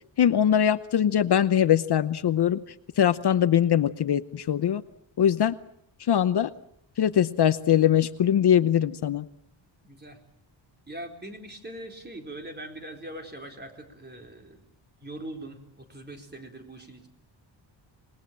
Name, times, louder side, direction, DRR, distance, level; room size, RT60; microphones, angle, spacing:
voice 1, 0.2-2.6 3.0-4.8 5.2-5.6 6.1-6.5 7.0-9.3, left 9 dB, 60° left, 13 dB, 0.9 m, -22 dB
voice 2, 9.8-10.2 10.9-14.6 15.0-17.1, right 1 dB, 20° right, 3 dB, 4.2 m, -41 dB
27.0 x 20.5 x 7.5 m, 0.71 s
wide cardioid pair, 150°, 46 cm